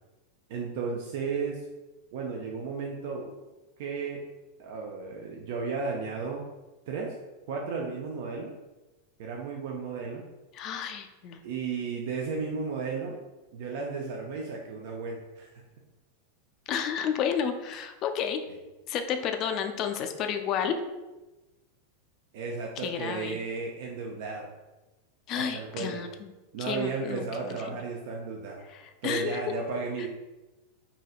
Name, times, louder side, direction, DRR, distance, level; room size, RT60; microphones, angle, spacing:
voice 1, 0.5-1.6 2.1-3.3 3.8-4.2 4.6-6.4 6.9-7.2 7.5-8.5 9.2-10.2 11.4-13.2 13.5-15.5 22.3-24.5 25.3-26.0 26.5-28.6 29.0-30.1, right 4 dB, 55° right, -1 dB, 0.4 m, -34 dB
voice 2, 10.5-11.4 16.7-18.4 18.9-20.8 22.8-23.4 25.3-26.3 26.6-27.8 28.7-29.4 30.0-30.1, left 7 dB, 40° left, 6 dB, 0.3 m, -31 dB
4.0 x 2.7 x 2.4 m, 1.1 s
figure-of-eight pair, 90°, 0 cm